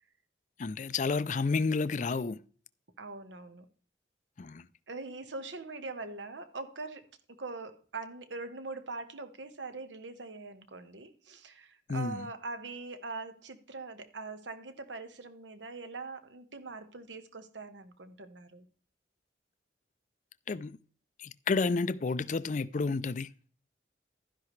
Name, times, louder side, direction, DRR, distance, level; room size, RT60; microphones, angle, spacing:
voice 1, 0.6-2.4 4.4-4.7 11.9-12.3 20.5-20.8 21.2-23.3, left 4 dB, 40° left, 0.4 m, -30 dB
voice 2, 3.0-3.6 4.9-7.1 7.4-18.6, right 3 dB, 80° right, 1.3 m, -42 dB
12.0 x 10.5 x 3.2 m
head